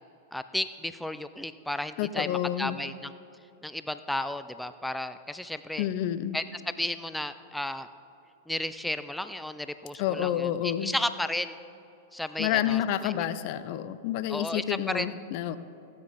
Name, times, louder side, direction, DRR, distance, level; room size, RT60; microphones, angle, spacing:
voice 1, 0.3-3.1 3.6-5.9 6.3-6.4 6.8-7.9 8.5-11.6 12.1-13.3 14.3-15.1, left 1 dB, 5° left, 11 dB, 0.4 m, -33 dB
voice 2, 2.0-2.8 5.8-6.4 10.0-11.0 12.4-15.6, left 11 dB, 55° left, 14 dB, 0.5 m, -29 dB
14.5 x 9.6 x 4.1 m, 2.7 s
hypercardioid pair, 110°, 0 cm